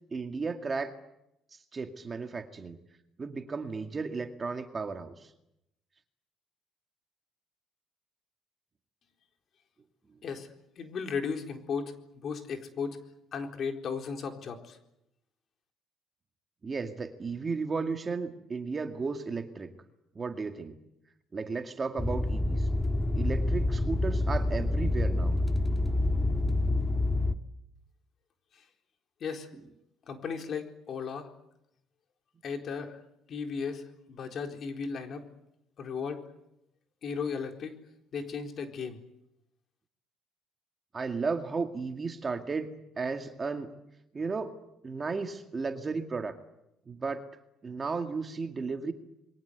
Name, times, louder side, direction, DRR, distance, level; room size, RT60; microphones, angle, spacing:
voice 1, 0.1-0.9 1.5-2.8 3.2-5.3 16.6-19.7 20.2-20.8 21.3-22.7 23.2-25.3 40.9-42.7 43.0-43.7 44.1-44.5 44.8-46.4 46.9-47.2 47.6-48.9, right 4 dB, 25° right, 6 dB, 2.1 m, -34 dB
voice 2, 10.8-13.0 13.3-14.8 29.2-29.5 30.1-31.3 32.4-33.0 33.3-35.2 35.8-36.2 37.0-37.8 38.1-39.0, left 5 dB, 50° left, 5 dB, 4.1 m, -35 dB
sound 1, 22.0-27.3, left 2 dB, 15° left, 1.6 m, -27 dB
28.0 x 23.0 x 8.2 m, 0.84 s
cardioid pair, 125°, 0 cm